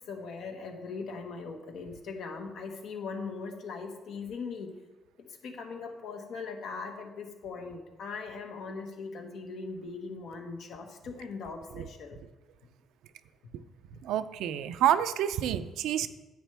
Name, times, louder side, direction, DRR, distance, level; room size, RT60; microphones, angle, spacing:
voice 1, 0.0-4.7 5.4-12.2, left 4 dB, 75° left, 3 dB, 1.4 m, -40 dB
voice 2, 14.1-16.1, right 10 dB, 85° right, 12 dB, 0.4 m, -28 dB
10.0 x 8.1 x 3.4 m, 1.1 s
cardioid pair, 105°, 0 cm